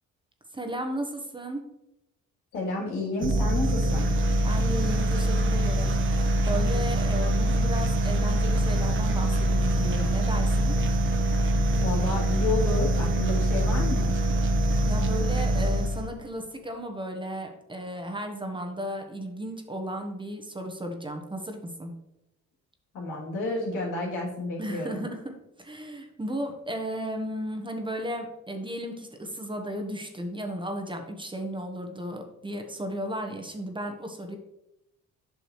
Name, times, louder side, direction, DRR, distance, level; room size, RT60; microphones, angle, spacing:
voice 1, 0.5-1.7 4.4-10.8 14.8-21.9 24.6-25.3 25.6-34.4, equal, 15° right, 3 dB, 1.1 m, -34 dB
voice 2, 2.5-4.1 11.7-14.2 22.9-25.0, left 2 dB, 80° left, -4 dB, 2.9 m, -31 dB
sound 1, 3.2-16.2, right 1 dB, 40° right, 1.0 m, -24 dB
8.3 x 6.1 x 3.1 m, 0.87 s
cardioid pair, 90°, 30 cm